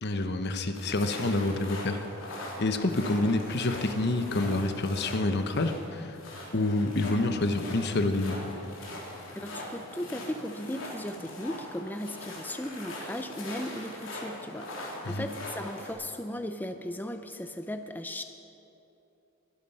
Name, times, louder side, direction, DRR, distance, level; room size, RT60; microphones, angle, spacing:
voice 1, 0.0-2.0 2.6-6.2 6.5-8.4 15.0-15.3, left 2 dB, 55° left, 8 dB, 1.0 m, -28 dB
sound 1, 0.7-15.9, left 1 dB, 75° left, 3.8 m, -41 dB
voice 2, 9.3-18.2, left 1 dB, 10° left, 7 dB, 0.5 m, -37 dB
22.5 x 11.5 x 5.6 m, 2.9 s
head